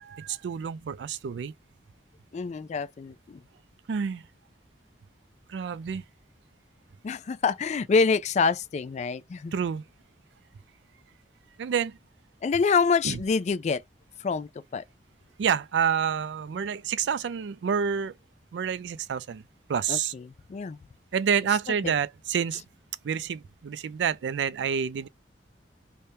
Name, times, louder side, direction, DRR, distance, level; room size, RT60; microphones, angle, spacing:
voice 1, 0.0-1.5 3.9-4.2 5.5-6.0 9.5-9.8 11.6-12.0 13.0-13.2 15.4-18.1 18.5-19.4 19.7-20.1 21.1-22.6 23.0-25.1, right 7 dB, 85° right, 0.4 m, -28 dB
voice 2, 2.3-3.4 7.0-9.5 12.4-13.8 14.2-14.8 19.9-20.8 21.8-21.9, left 5 dB, 40° left, 0.3 m, -26 dB
3.4 x 2.1 x 4.1 m
head